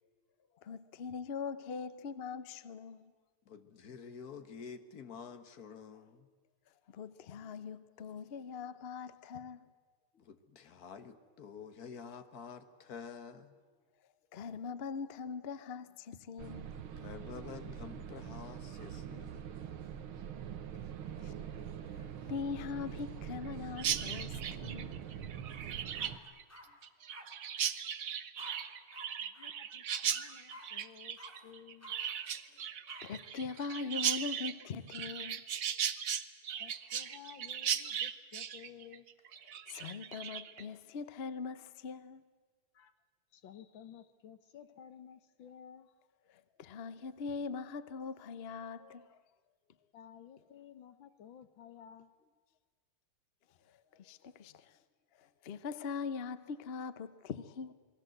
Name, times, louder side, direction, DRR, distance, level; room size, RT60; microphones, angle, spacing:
voice 1, 0.6-3.1 6.9-9.6 14.3-16.8 21.2-21.3 21.8-25.0 33.0-35.4 39.7-42.2 46.3-49.2 53.7-54.8 55.1-57.7, left 5 dB, 80° left, 0.5 m, -42 dB
voice 2, 3.4-6.3 10.2-13.5 17.0-19.5, left 6 dB, 50° left, 1.6 m, -49 dB
sound 1, 16.4-26.2, right 8 dB, 75° right, 1.9 m, -44 dB
Chirp tweet, 23.8-40.6, right 8 dB, 55° right, 1.0 m, -37 dB
sound 2, 25.5-25.6 25.9-26.7 27.1-27.2 28.4-28.5 28.9-29.1 29.3-29.5 29.9-30.0 30.5-30.7 31.2-31.3 31.8-32.0 32.9-33.0, equal, 5° left, 3.4 m, -51 dB
voice 3, 29.2-31.9 36.6-39.1 42.7-42.9 43.3-45.9 49.9-52.1, left 9 dB, 65° left, 1.8 m, -54 dB
29.0 x 21.0 x 7.9 m
omnidirectional pair, 2.4 m